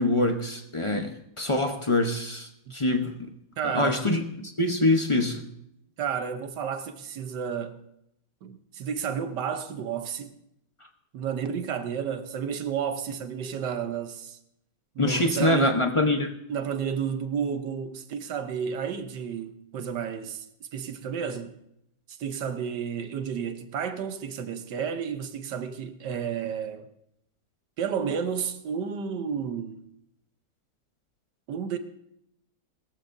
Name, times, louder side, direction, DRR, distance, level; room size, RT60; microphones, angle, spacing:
voice 1, 0.0-3.2 3.6-5.4 15.0-16.3, left 2 dB, 30° left, 0.5 m, -25 dB
voice 2, 3.6-4.0 6.0-7.8 8.4-10.3 11.1-14.4 14.9-15.7 16.5-21.6 22.1-26.9 27.8-29.8 31.5-31.8, right 7 dB, 75° right, 1.5 m, -31 dB
20.5 x 14.0 x 2.6 m
omnidirectional pair, 1.9 m